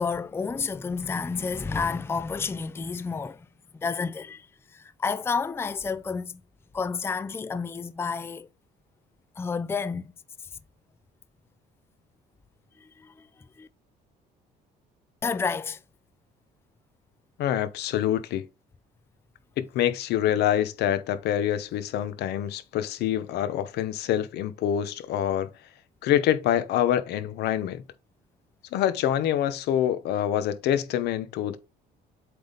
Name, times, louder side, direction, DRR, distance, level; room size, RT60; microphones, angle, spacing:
voice 1, 0.0-3.5 3.8-6.4 6.7-8.5 9.4-10.1 10.4-10.5 12.8-13.7 15.2-15.8, left 5 dB, 15° left, 0.4 m, -30 dB
voice 2, 17.4-18.5 19.6-25.5 26.0-27.8 28.7-31.6, left 11 dB, 75° left, 0.9 m, -26 dB
7.8 x 3.5 x 4.0 m
cardioid pair, 110°, 17 cm